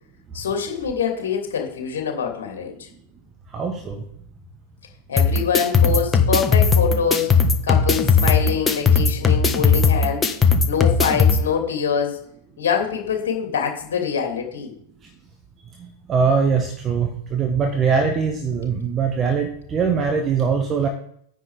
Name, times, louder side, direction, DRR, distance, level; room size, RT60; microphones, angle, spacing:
voice 1, 0.3-2.9 5.1-10.3 10.7-12.2 12.6-14.7, left 7 dB, 60° left, 2 dB, 2.8 m, -24 dB
voice 2, 3.5-4.0 15.8-20.9, right 5 dB, 25° right, 4 dB, 1.5 m, -22 dB
sound 1, 5.2-11.4, left 5 dB, 15° left, 1.3 m, -18 dB
9.8 x 7.9 x 4.9 m, 0.68 s
figure-of-eight pair, 90°, 0 cm